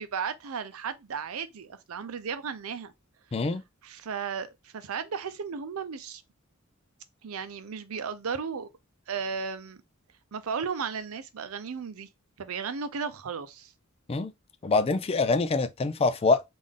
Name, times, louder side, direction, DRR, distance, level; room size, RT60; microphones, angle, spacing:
voice 1, 0.0-2.9 3.8-6.2 7.2-8.7 9.1-9.8 10.3-12.1 12.4-13.7, right 6 dB, 90° right, 0.5 m, -35 dB
voice 2, 3.3-3.6 14.1-14.3 14.6-16.4, left 3 dB, 30° left, 0.3 m, -25 dB
3.7 x 2.6 x 3.5 m
head